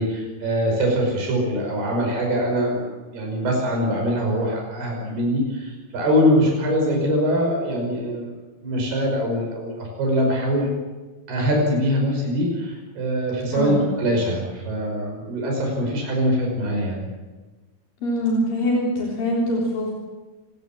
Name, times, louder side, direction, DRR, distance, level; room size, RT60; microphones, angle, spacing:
voice 1, 0.0-8.3 8.6-10.7 11.3-17.1, equal, 90° right, 0 dB, 7.6 m, -23 dB
voice 2, 18.0-19.9, equal, 65° left, -3 dB, 5.3 m, -23 dB
27.5 x 23.5 x 7.4 m, 1.3 s
omnidirectional pair, 4.4 m